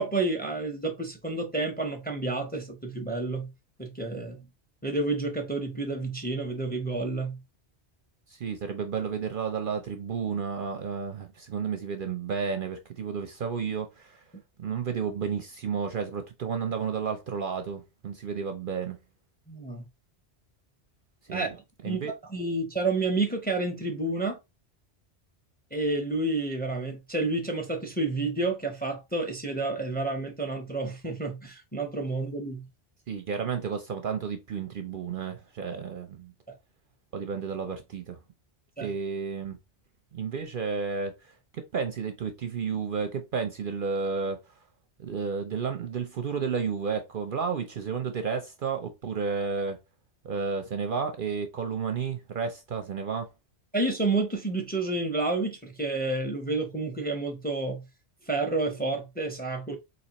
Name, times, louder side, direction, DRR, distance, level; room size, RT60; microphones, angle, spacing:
voice 1, 0.0-3.5 3.8-4.4 4.8-7.4 19.5-19.8 21.3-22.0 22.3-24.4 25.7-32.7 35.7-35.8 36.5-36.6 38.8-38.9 53.7-57.8 58.3-59.8, right 2 dB, 10° left, 0.7 m, -30 dB
voice 2, 8.3-14.2 14.6-19.0 21.3-21.5 21.8-22.1 33.1-36.3 37.1-38.2 38.8-39.6 40.1-44.5 45.0-49.8 50.2-53.3, right 6 dB, 60° right, 0.6 m, -32 dB
4.1 x 2.8 x 2.9 m
omnidirectional pair, 1.1 m